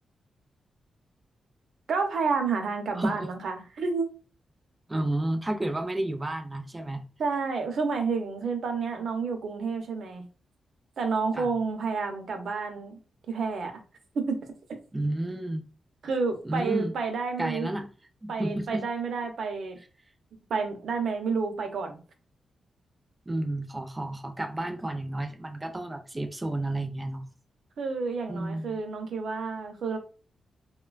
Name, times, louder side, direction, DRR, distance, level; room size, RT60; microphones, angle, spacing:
voice 1, 1.9-4.1 7.2-10.2 11.0-13.0 13.3-13.8 14.1-14.5 16.0-17.7 18.3-19.8 20.5-22.0 27.8-30.0, right 4 dB, 75° right, 0.6 m, -30 dB
voice 2, 4.9-7.0 11.3-11.5 14.9-15.6 16.4-16.9 17.4-17.9 18.2-18.8 23.3-27.3 28.3-28.8, right 1 dB, 20° right, 0.4 m, -31 dB
3.0 x 2.2 x 2.3 m
cardioid pair, 90°, 0 cm